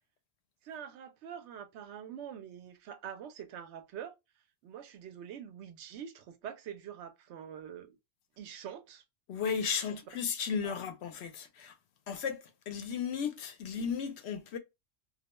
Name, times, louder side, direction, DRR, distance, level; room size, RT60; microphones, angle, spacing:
voice 1, 0.6-4.1 4.6-7.9 8.4-9.0 9.6-10.0 10.6-10.8, right 9 dB, 85° right, 0.9 m, -45 dB
voice 2, 9.3-11.7 12.1-14.6, left 6 dB, 75° left, 0.8 m, -35 dB
2.3 x 2.1 x 2.9 m
omnidirectional pair, 1.1 m